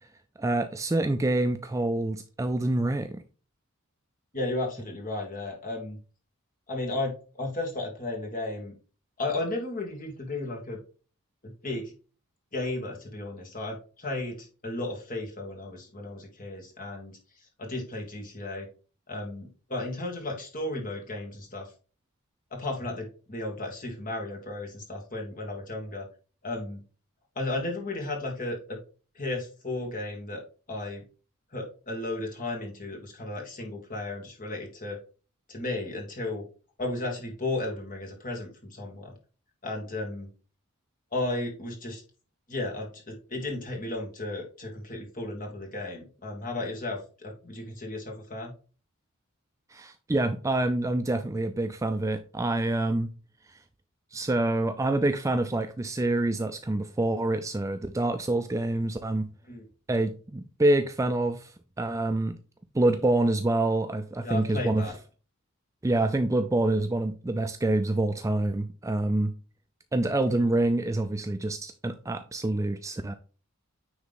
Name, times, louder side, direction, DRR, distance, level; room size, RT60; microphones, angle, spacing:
voice 1, 0.4-3.2 49.7-53.1 53.5-53.6 54.1-59.3 59.9-62.4 62.7-64.9 65.8-69.3 69.9-73.1, right 2 dB, 15° right, 0.3 m, -26 dB
voice 2, 4.3-6.0 6.7-8.7 9.2-10.8 11.4-11.9 12.5-17.1 17.6-18.7 19.1-21.7 22.5-26.1 26.4-26.8 27.4-28.8 29.2-30.4 30.7-31.0 31.5-35.0 35.5-36.4 36.8-39.1 39.6-40.3 41.1-42.0 42.5-48.5 59.5-59.7 64.2-65.0, left 2 dB, 35° left, 2.0 m, -34 dB
9.5 x 3.6 x 3.6 m
head